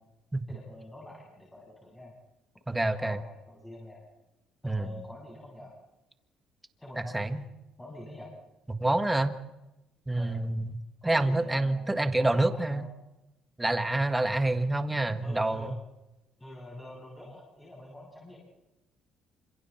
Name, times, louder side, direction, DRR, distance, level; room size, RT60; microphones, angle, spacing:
voice 1, 0.5-2.1 2.6-4.0 4.6-5.7 6.8-7.3 7.8-8.3 10.2-10.4 11.0-12.9 15.2-15.8 16.4-18.4, left 1 dB, 10° left, -4 dB, 7.9 m, -46 dB
voice 2, 2.7-3.2 4.6-4.9 6.9-7.4 8.7-9.3 10.1-10.7 11.0-12.9 13.6-15.7, right 2 dB, 10° right, 8 dB, 1.6 m, -27 dB
29.0 x 26.5 x 4.4 m, 0.98 s
cardioid pair, 130°, 0 cm